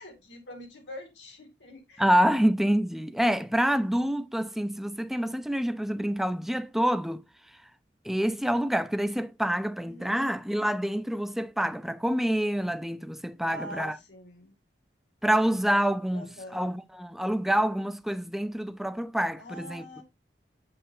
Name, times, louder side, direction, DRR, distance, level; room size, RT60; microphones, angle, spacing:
voice 1, 0.0-2.1 9.8-10.3 13.5-14.5 16.1-16.6 19.4-20.0, equal, 85° left, 2.3 m, -44 dB
voice 2, 2.0-7.2 8.0-14.0 15.2-20.0, equal, ahead, 0.4 m, -27 dB
7.3 x 6.7 x 2.7 m
head